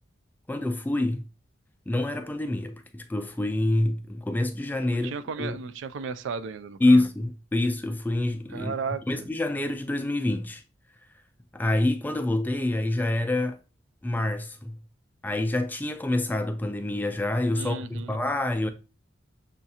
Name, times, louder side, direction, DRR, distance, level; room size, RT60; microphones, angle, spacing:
voice 1, 0.5-1.2 1.9-5.1 5.4-5.6 6.8-8.7 9.1-10.6 11.5-13.6 14.0-14.8 15.2-18.7, left 1 dB, 10° left, 0.3 m, -26 dB
voice 2, 4.9-7.1 8.5-9.3 17.5-18.2, right 5 dB, 70° right, 0.3 m, -35 dB
6.3 x 2.4 x 2.7 m
head